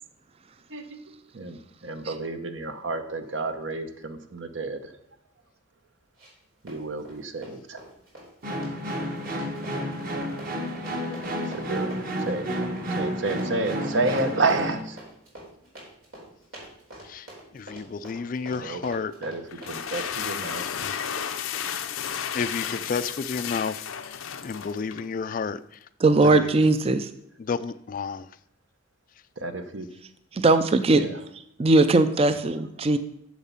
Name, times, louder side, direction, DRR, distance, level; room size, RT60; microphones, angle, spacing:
voice 1, 0.7-5.0 6.6-7.8 11.4-11.9 12.2-12.5 12.9-15.0 18.5-20.6 29.4-29.9 30.9-31.2 32.8-32.9, right 3 dB, 70° right, 0.9 m, -30 dB
Run, 6.2-6.4 6.7-21.8 22.0-22.2 22.6-22.7 23.3-23.5, right 1 dB, 85° right, 4.2 m, -45 dB
sound 1, 8.4-14.8, equal, 45° right, 1.3 m, -30 dB
voice 2, 17.5-19.1 20.8-21.1 22.3-23.8 24.4-25.6 26.3-26.5 27.4-28.3, left 5 dB, 40° left, 0.3 m, -31 dB
sound 2, 19.5-25.1, left 8 dB, 85° left, 0.6 m, -33 dB
voice 3, 26.0-27.1 30.3-31.0 31.6-33.0, right 2 dB, 30° right, 0.4 m, -19 dB
7.3 x 7.3 x 5.7 m
head